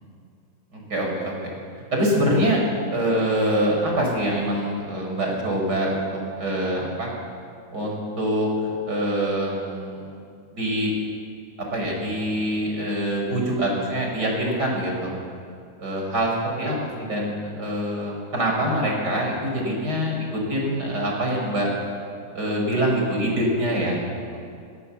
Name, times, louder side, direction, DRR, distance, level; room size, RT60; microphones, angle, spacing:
voice 1, 0.7-1.6 1.9-2.6 2.9-6.1 6.4-7.1 7.7-10.1 10.5-10.9 11.7-15.1 15.8-16.3 16.6-21.7 22.3-24.0 24.3-24.4, equal, 85° right, -1 dB, 5.4 m, -24 dB
23.5 x 16.5 x 7.1 m, 2.3 s
omnidirectional pair, 1.7 m